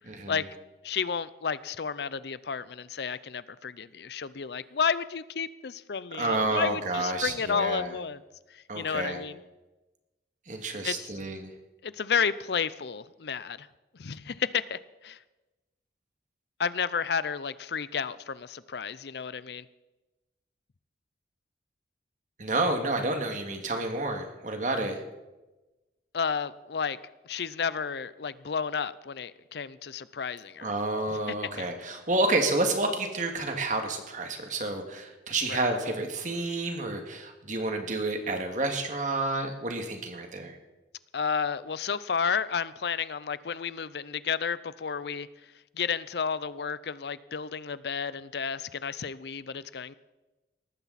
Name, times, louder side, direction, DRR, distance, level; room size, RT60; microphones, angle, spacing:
voice 1, 0.0-0.4 6.1-7.9 8.7-9.2 10.5-11.5 22.4-25.0 30.6-40.6, right 2 dB, 45° right, 4 dB, 2.0 m, -30 dB
voice 2, 0.8-8.2 8.5-9.4 10.8-11.1 11.8-13.7 14.0-15.2 16.6-19.6 26.1-27.0 27.3-30.7 31.6-31.7 35.5-35.6 41.1-45.3 45.8-49.9, left 6 dB, 65° left, 17 dB, 0.5 m, -31 dB
19.0 x 14.0 x 4.2 m, 1.1 s
head